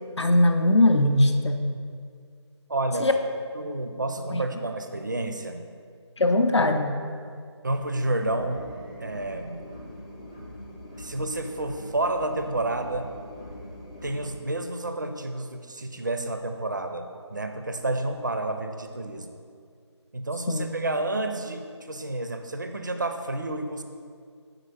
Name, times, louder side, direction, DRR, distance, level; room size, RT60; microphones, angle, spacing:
voice 1, 0.2-1.6 3.0-3.1 4.3-4.4 6.2-6.9 20.5-20.7, left 1 dB, 70° left, 6 dB, 0.6 m, -20 dB
voice 2, 2.7-3.1 3.5-5.6 7.6-8.6 9.0-9.6 11.0-13.1 14.0-19.4 20.1-23.8, right 2 dB, 40° right, 6 dB, 0.4 m, -30 dB
sound 1, 8.2-14.4, left 1 dB, 15° left, 0.5 m, -42 dB
6.7 x 3.8 x 6.3 m, 2.2 s
figure-of-eight pair, 180°, 15 cm